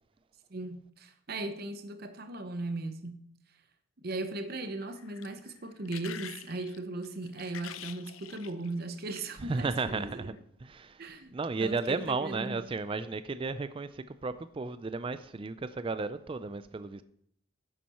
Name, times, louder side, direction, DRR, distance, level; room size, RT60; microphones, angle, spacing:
voice 1, 0.5-3.2 4.0-10.3 11.0-11.3 11.6-12.7, right 2 dB, 45° right, 0.8 m, -38 dB
sound 1, 4.8-9.4 10.2-10.4, left 10 dB, 75° left, 0.5 m, -47 dB
voice 2, 9.4-10.3 10.6-17.0, right 3 dB, 25° right, 0.3 m, -34 dB
10.0 x 7.4 x 4.3 m
head